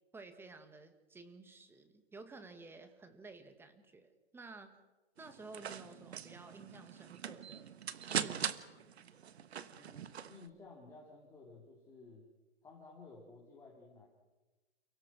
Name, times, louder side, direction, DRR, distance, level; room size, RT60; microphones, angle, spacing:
voice 1, 0.1-4.8 5.2-7.7 8.1-8.8, right 3 dB, 5° right, 8 dB, 1.6 m, -53 dB
sound 1, 5.2-10.5, right 8 dB, 65° right, 1.4 m, -42 dB
voice 2, 9.7-12.3 12.6-14.1, left 3 dB, 10° left, -3 dB, 3.9 m, -55 dB
30.0 x 17.0 x 6.1 m, 1.2 s
hypercardioid pair, 140°, 34 cm